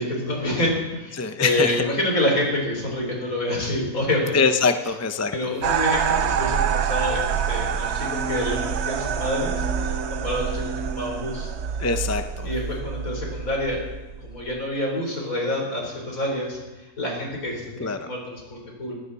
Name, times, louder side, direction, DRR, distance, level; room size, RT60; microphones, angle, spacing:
voice 1, 0.0-4.4 5.3-11.5 12.4-13.8 14.2-18.9, left 1 dB, 60° left, 0 dB, 4.8 m, -27 dB
voice 2, 1.1-1.8 4.3-5.4 11.8-12.5 17.8-18.1, left 4 dB, 20° left, 7 dB, 0.4 m, -23 dB
sound 1, 5.6-14.6, right 8 dB, 55° right, 0.8 m, -26 dB
sound 2, 7.9-11.1, right 2 dB, 90° left, 7.2 m, -35 dB
20.0 x 15.5 x 4.2 m, 1.1 s
omnidirectional pair, 1.7 m